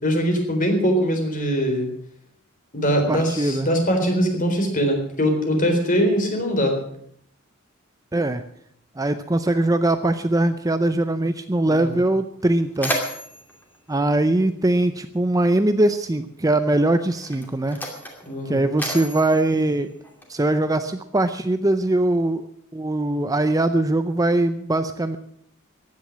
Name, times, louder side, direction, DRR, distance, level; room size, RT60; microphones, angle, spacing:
voice 1, 0.0-1.9 2.7-6.8 11.7-11.9 18.3-18.6, equal, 40° left, 4 dB, 4.0 m, -22 dB
voice 2, 3.1-3.7 8.1-8.4 9.0-12.9 13.9-17.8 18.5-19.9 20.3-22.5 22.7-25.2, right 1 dB, 15° right, 10 dB, 0.6 m, -21 dB
Mechanisms, 12.3-15.0 16.0-16.2 17.0-20.6, equal, 10° left, 2.5 m, -33 dB
15.0 x 10.5 x 7.3 m, 0.68 s
head